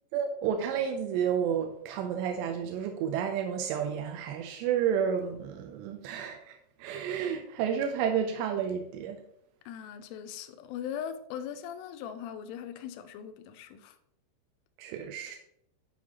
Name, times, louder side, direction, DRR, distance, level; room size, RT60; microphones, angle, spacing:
voice 1, 0.1-9.2 14.8-15.4, right 8 dB, 85° right, 2.8 m, -31 dB
voice 2, 9.7-14.0, left 9 dB, 85° left, 2.6 m, -40 dB
8.5 x 5.7 x 2.9 m
omnidirectional pair, 4.9 m